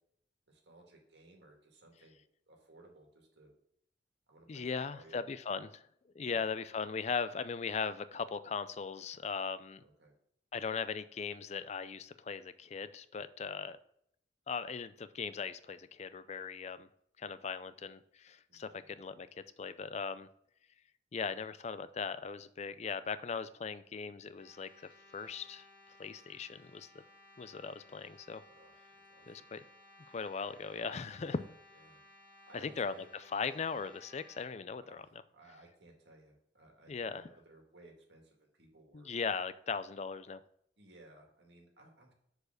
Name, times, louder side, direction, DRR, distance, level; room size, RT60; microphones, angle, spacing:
voice 1, 0.5-3.5 4.3-5.3 6.2-6.5 9.8-10.1 18.5-18.9 28.4-29.4 31.2-32.0 32.5-33.0 34.8-39.1 40.8-42.1, right 2 dB, 65° right, 1 dB, 1.8 m, -60 dB
voice 2, 4.5-5.8 6.2-9.8 10.5-13.8 14.5-16.9 17.2-20.3 21.1-24.7 25.1-25.7 26.0-26.9 27.4-28.4 29.3-29.6 30.1-31.4 32.5-32.9 33.3-35.0 36.9-37.3 38.9-40.4, left 5 dB, 35° left, 13 dB, 0.4 m, -39 dB
sound 1, 24.3-34.4, left 1 dB, 60° left, 2.1 m, -60 dB
6.5 x 4.8 x 6.4 m, 0.71 s
head